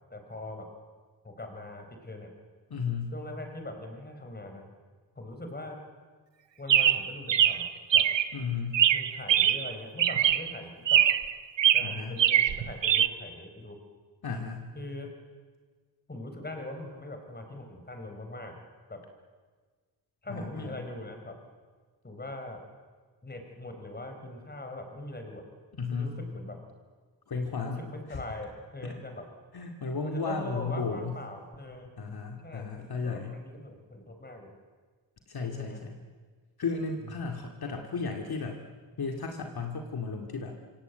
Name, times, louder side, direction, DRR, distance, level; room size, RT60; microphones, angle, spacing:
voice 1, 0.1-0.7 1.2-2.3 3.1-4.6 5.2-5.8 6.6-7.7 7.9-8.1 8.9-11.0 11.7-13.8 14.7-15.1 16.1-18.6 18.9-19.0 20.2-21.4 22.0-22.6 23.2-25.4 25.9-26.6 27.6-29.2 30.0-31.9 32.4-34.5 35.4-35.8 37.1-37.3, left 1 dB, 20° left, 5 dB, 4.2 m, -41 dB
voice 2, 2.7-3.1 8.3-8.8 11.8-12.2 14.2-14.7 20.3-20.8 25.8-26.2 27.3-27.8 28.1-28.2 28.8-28.9 29.5-31.1 32.0-33.3 35.3-36.0 36.6-38.6 39.0-40.6, left 4 dB, 55° left, 3 dB, 2.4 m, -34 dB
Chirp tweet, 6.7-8.3 8.7-9.7 10.0-10.5 10.9-11.3 11.6-13.1, right 10 dB, 80° right, 1.0 m, -23 dB
26.5 x 26.0 x 8.1 m, 1.5 s
wide cardioid pair, 165°, 43 cm